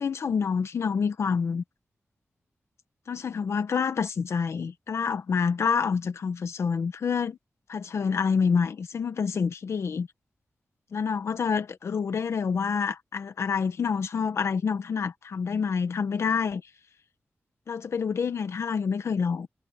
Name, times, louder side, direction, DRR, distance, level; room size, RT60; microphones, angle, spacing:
voice 1, 0.0-1.6 3.1-7.4 7.7-10.1 10.9-16.6 17.7-19.5, left 6 dB, 75° left, 1.3 m, -27 dB
wide cardioid pair, 145°, 5 cm